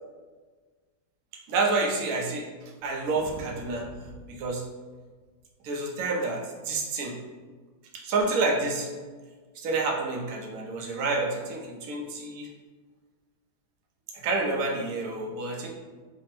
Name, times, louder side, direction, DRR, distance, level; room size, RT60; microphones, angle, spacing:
voice 1, 1.5-2.4 2.8-3.9 4.3-4.6 5.6-7.1 7.9-8.9 9.6-12.5 14.2-15.7, right 3 dB, 65° right, 0 dB, 0.9 m, -28 dB
3.4 x 2.0 x 4.1 m, 1.4 s
omnidirectional pair, 1.8 m